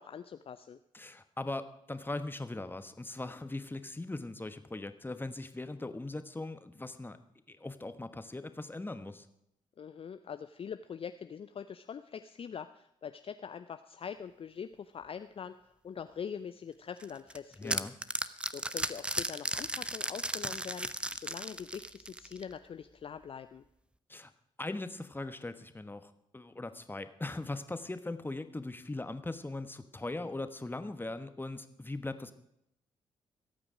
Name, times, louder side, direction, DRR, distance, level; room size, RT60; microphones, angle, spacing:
voice 1, 0.0-0.8 9.8-17.9 18.4-20.9 21.1-23.6, left 7 dB, 35° left, 11 dB, 0.5 m, -43 dB
voice 2, 0.9-7.2 7.5-9.3 17.6-17.9 24.1-24.3 24.6-32.3, left 2 dB, 15° left, 10 dB, 1.2 m, -40 dB
sound 1, 17.0-22.5, right 1 dB, 5° right, 0.7 m, -35 dB
25.5 x 8.9 x 5.0 m, 0.78 s
figure-of-eight pair, 40°, 16 cm